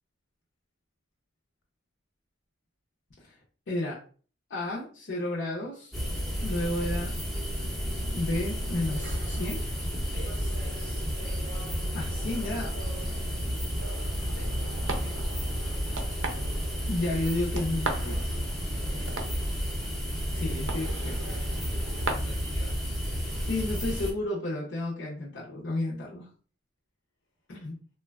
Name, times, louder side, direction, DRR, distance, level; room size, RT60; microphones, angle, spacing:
voice 1, 3.7-4.0 4.5-5.9 6.4-7.1 7.9-9.6 11.9-12.8 16.9-18.4 20.3-21.4 23.4-26.3 27.5-27.7, left 2 dB, 65° left, -6 dB, 0.6 m, -32 dB
sound 1, 5.9-24.1, equal, ahead, 0.5 m, -31 dB
voice 2, 6.4-6.8 10.0-11.1 14.1-15.8 18.9-19.5 22.1-22.8, left 1 dB, 85° left, 1 dB, 1.0 m, -50 dB
sound 2, 8.5-22.1, right 3 dB, 75° right, 0.5 m, -41 dB
3.1 x 2.2 x 2.3 m, 0.41 s
head